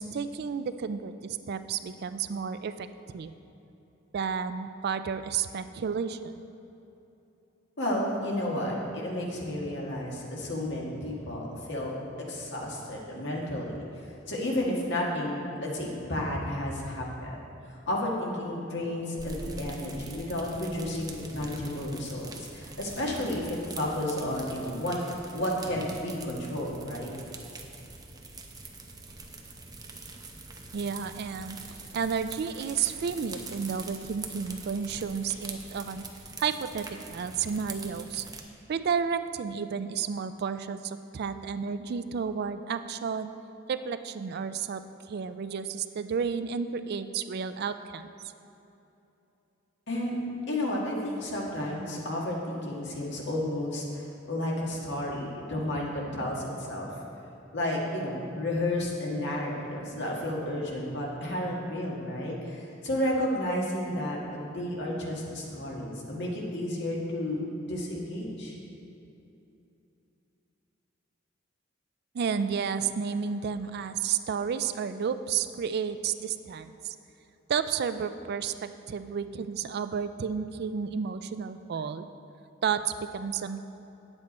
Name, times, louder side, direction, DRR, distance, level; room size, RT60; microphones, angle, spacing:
voice 1, 0.0-2.9 3.1-3.3 4.1-6.4 30.7-31.6 31.9-36.0 36.4-38.2 38.7-43.3 43.7-44.8 45.1-48.1 72.1-77.0 77.5-82.1 82.6-83.6, right 6 dB, 55° right, 11 dB, 0.4 m, -31 dB
voice 2, 7.8-11.9 12.3-13.7 14.3-17.4 17.7-25.0 25.3-27.1 49.9-50.2 50.5-54.0 54.3-56.9 57.5-68.6, left 1 dB, 65° left, -3 dB, 1.8 m, -32 dB
sound 1, 19.2-38.4, right 3 dB, 20° right, 0.7 m, -44 dB
9.8 x 7.9 x 4.2 m, 2.9 s
head